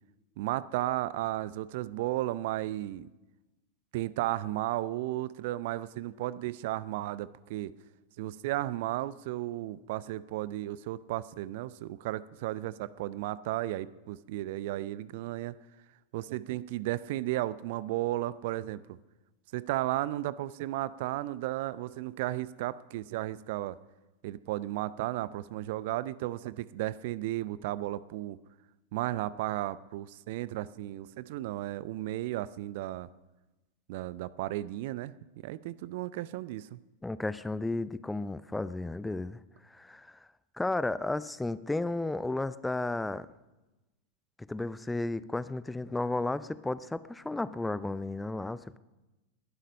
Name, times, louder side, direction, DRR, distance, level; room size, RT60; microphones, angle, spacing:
voice 1, 0.4-3.1 3.9-7.7 8.2-15.5 16.1-19.0 19.5-23.8 24.2-28.4 28.9-33.1 33.9-36.8, right 15 dB, 50° right, 19 dB, 0.5 m, -34 dB
voice 2, 37.0-39.4 39.7-40.2 40.6-43.3 44.5-48.8, left 2 dB, 5° left, 17 dB, 0.5 m, -33 dB
20.5 x 11.5 x 5.4 m, 1.1 s
figure-of-eight pair, 90°, 0 cm